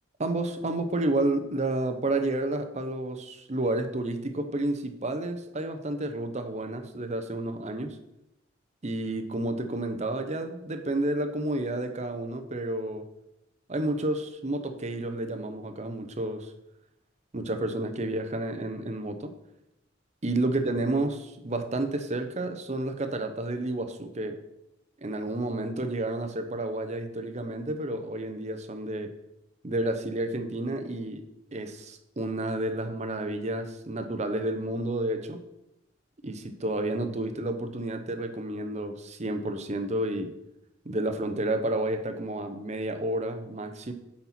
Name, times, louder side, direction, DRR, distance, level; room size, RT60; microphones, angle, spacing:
voice 1, 0.2-8.0 8.8-13.1 13.7-16.5 17.3-19.3 20.2-24.4 25.0-29.1 29.6-31.2 31.5-35.4 36.2-40.3 40.8-43.9, right 2 dB, 35° right, 7 dB, 0.8 m, -30 dB
8.0 x 4.3 x 5.8 m, 0.87 s
head